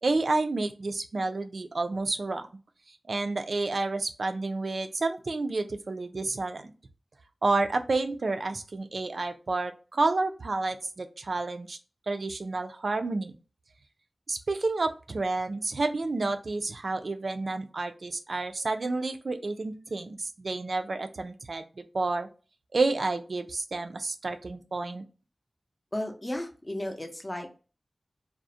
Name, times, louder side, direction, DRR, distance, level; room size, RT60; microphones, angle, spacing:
voice 1, 0.0-2.5 2.9-6.7 7.4-11.8 12.1-13.3 14.3-22.3 22.7-25.0, right 3 dB, 70° right, 7 dB, 0.3 m, -30 dB
voice 2, 25.9-27.6, left 1 dB, 25° left, 4 dB, 0.5 m, -34 dB
2.4 x 2.0 x 2.6 m, 0.35 s
wide cardioid pair, 85°, 0 cm